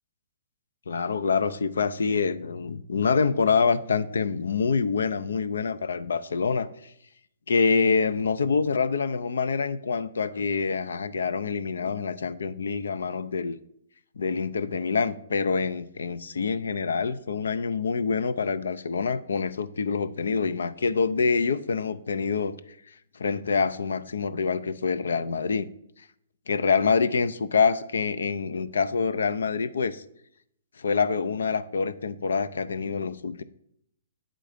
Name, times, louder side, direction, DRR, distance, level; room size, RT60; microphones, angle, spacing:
voice 1, 0.9-6.9 7.5-13.6 14.2-22.5 23.1-25.7 26.5-30.0 30.8-33.4, left 5 dB, 85° left, 0.5 m, -26 dB
9.1 x 3.8 x 5.0 m
hypercardioid pair, 140°, 0 cm